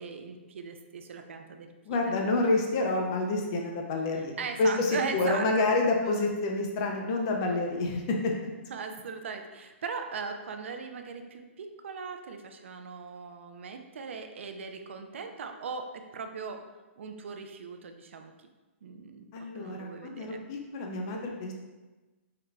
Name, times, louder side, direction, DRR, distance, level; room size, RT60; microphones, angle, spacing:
voice 1, 0.0-2.2 4.4-5.5 6.0-6.4 8.7-16.6 17.0-18.3 18.8-20.5, right 5 dB, 70° right, 6 dB, 0.4 m, -39 dB
voice 2, 1.9-8.3 19.3-21.5, left 2 dB, 25° left, 2 dB, 0.3 m, -28 dB
3.7 x 2.2 x 3.2 m, 1.2 s
hypercardioid pair, 170°, 7 cm